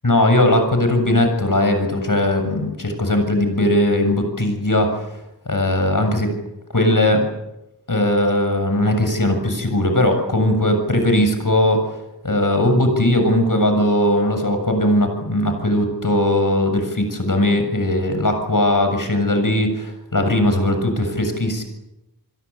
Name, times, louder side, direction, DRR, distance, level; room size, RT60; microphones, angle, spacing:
voice 1, 0.0-5.0 5.5-6.3 6.7-7.2 7.9-11.8 12.2-21.6, left 1 dB, 50° left, 6 dB, 7.1 m, -19 dB
30.0 x 22.0 x 8.4 m, 0.90 s
wide cardioid pair, 60°, 41 cm